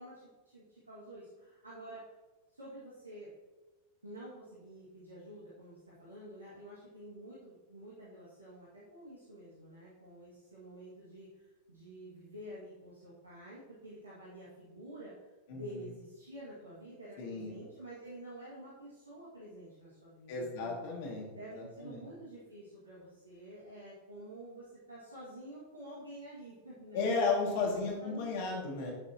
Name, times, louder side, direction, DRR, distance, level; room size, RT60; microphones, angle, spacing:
voice 1, 0.0-2.1 2.5-3.3 4.0-15.1 15.5-20.8 21.3-27.1 28.0-28.3, right 1 dB, 80° right, -8 dB, 2.1 m, -49 dB
voice 2, 15.5-15.9 17.2-17.5 20.3-21.3 21.6-22.1 26.9-28.9, left 4 dB, 50° left, -1 dB, 2.4 m, -34 dB
11.5 x 6.6 x 3.0 m, 1.2 s
figure-of-eight pair, 90°, 0 cm